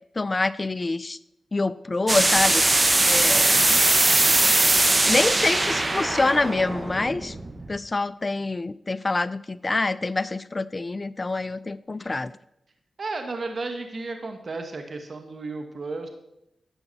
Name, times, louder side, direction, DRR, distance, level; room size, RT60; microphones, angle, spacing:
voice 1, 0.2-1.2 1.5-2.6 3.1-3.6 5.0-7.3 7.7-12.3, left 3 dB, 35° left, 17 dB, 0.4 m, -26 dB
sound 1, 2.1-7.8, right 2 dB, 30° right, 1.3 m, -21 dB
voice 2, 3.1-3.8 13.0-16.1, right 3 dB, 55° right, 5 dB, 1.4 m, -34 dB
11.5 x 8.0 x 4.2 m, 0.83 s
cardioid pair, 45°, 0 cm